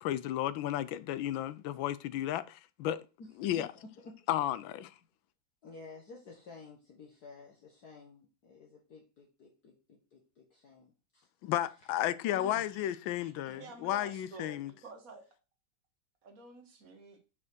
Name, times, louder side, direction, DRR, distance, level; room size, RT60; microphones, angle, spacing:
voice 1, 0.0-3.0 3.4-3.7 4.3-4.9 11.4-14.7, left 12 dB, 85° left, 1.4 m, -33 dB
voice 2, 3.2-4.3 5.6-11.3 12.3-12.9 13.2-13.6, left 3 dB, 55° left, 1.9 m, -53 dB
voice 3, 13.5-15.3 16.2-17.2, right 4 dB, 45° right, 1.9 m, -50 dB
6.0 x 5.1 x 6.1 m
omnidirectional pair, 2.1 m